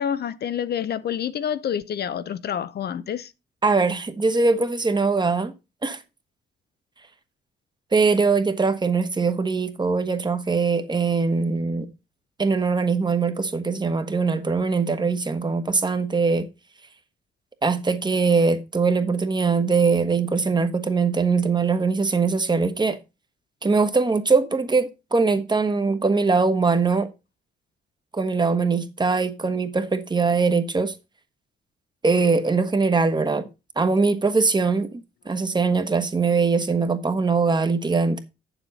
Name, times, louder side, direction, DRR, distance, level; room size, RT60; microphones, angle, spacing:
voice 1, 0.0-3.3, left 9 dB, 55° left, 0.6 m, -28 dB
voice 2, 3.6-5.5 5.8-6.0 7.9-11.9 12.4-16.5 17.6-23.0 23.6-27.1 28.1-30.9 32.0-33.5 33.8-34.9 35.2-38.2, right 4 dB, 20° right, 1.2 m, -22 dB
8.5 x 7.2 x 4.1 m
cardioid pair, 90°, 20 cm